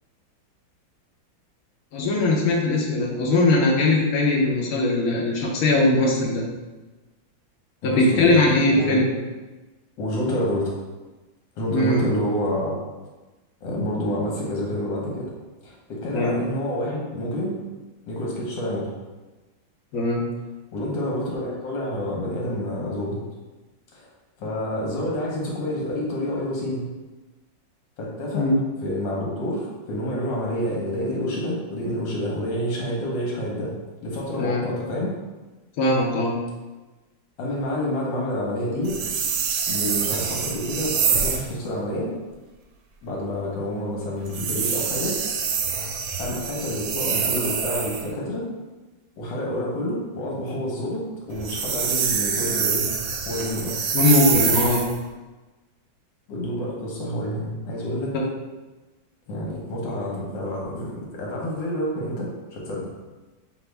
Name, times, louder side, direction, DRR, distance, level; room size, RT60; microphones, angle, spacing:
voice 1, 1.9-6.4 7.8-9.1 11.7-12.0 16.1-16.3 19.9-20.2 28.3-28.5 34.4-34.7 35.8-36.4 53.9-54.8 58.1-58.2, left 2 dB, 60° left, -2 dB, 1.1 m, -20 dB
voice 2, 7.8-8.3 8.7-9.0 10.0-10.7 11.6-12.7 13.6-15.3 15.6-17.6 18.1-18.9 20.7-23.2 23.9-24.1 24.4-26.8 28.0-28.5 28.8-33.7 34.0-35.1 37.4-39.0 39.7-42.1 43.0-45.2 46.2-48.5 49.2-52.8 53.3-53.8 56.3-58.1 59.3-62.9, equal, 75° left, -3 dB, 1.7 m, -28 dB
sound 1, 38.8-41.5 44.3-48.1 51.3-55.0, right 6 dB, 70° right, 1.0 m, -25 dB
6.0 x 2.6 x 3.3 m, 1.2 s
omnidirectional pair, 2.1 m